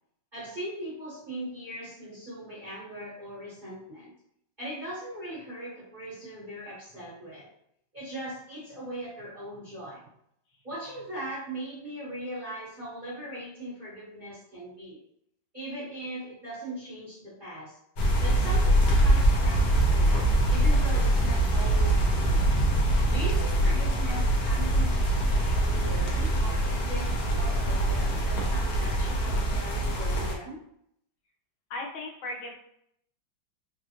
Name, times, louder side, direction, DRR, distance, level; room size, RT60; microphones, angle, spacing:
voice 1, 0.3-4.1 4.6-7.5 7.9-10.1 10.6-15.0 15.5-17.8 18.2-22.5 23.1-30.6, right 1 dB, 30° right, -10 dB, 1.1 m, -40 dB
sound 1, 18.0-30.3, right 1 dB, 65° left, 1.0 m, -24 dB
voice 2, 31.7-32.6, left 2 dB, 80° left, 0 dB, 1.5 m, -36 dB
3.5 x 2.2 x 2.8 m, 0.72 s
omnidirectional pair, 2.1 m